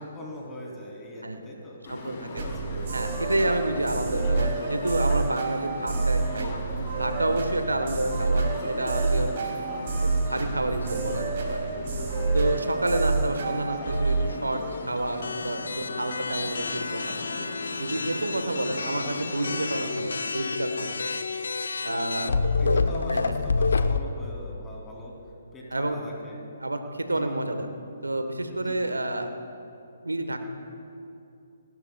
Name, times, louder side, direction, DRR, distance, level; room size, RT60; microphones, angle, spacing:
voice 1, 0.0-2.8 21.8-25.1 25.5-26.4 26.9-27.4 28.5-29.0, left 1 dB, 15° left, -3 dB, 3.1 m, -42 dB
sound 1, 1.8-19.9, left 2 dB, 40° left, 3.5 m, -38 dB
sound 2, 2.4-14.2, right 3 dB, 50° right, 3.0 m, -28 dB
voice 2, 2.9-6.5 7.0-9.3 10.0-11.7 12.3-14.6 14.9-17.1 17.8-21.0 21.8-22.3 22.6-22.9 23.1-23.3 25.7-26.0 26.6-27.7 28.0-29.3 30.0-30.4, right 1 dB, 85° right, 7 dB, 1.3 m, -29 dB
sound 3, 13.8-24.0, left 4 dB, 70° left, 0.6 m, -29 dB
29.5 x 12.5 x 2.3 m, 2.5 s
figure-of-eight pair, 135°, 0 cm